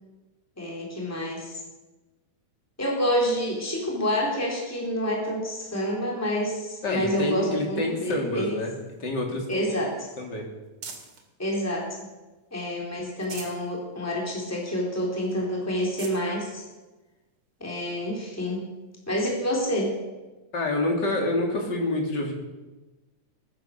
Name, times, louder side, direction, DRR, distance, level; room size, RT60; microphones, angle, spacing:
voice 1, 0.6-1.6 2.8-8.6 9.5-10.1 11.4-11.9 12.5-16.6 17.6-18.7 19.1-19.9, equal, 5° left, -2 dB, 3.8 m, -28 dB
voice 2, 6.8-8.7 9.0-9.4 10.2-10.5 20.5-22.3, left 2 dB, 35° left, 1 dB, 3.4 m, -27 dB
sound 1, 8.6-11.3 11.8-12.6 13.0-13.7 14.1-14.2 14.6-14.7 15.3-15.4 15.8-16.2 17.1-17.2 18.9-19.0, right 5 dB, 70° right, 3.4 m, -45 dB
20.0 x 10.5 x 6.8 m, 1.1 s
omnidirectional pair, 3.4 m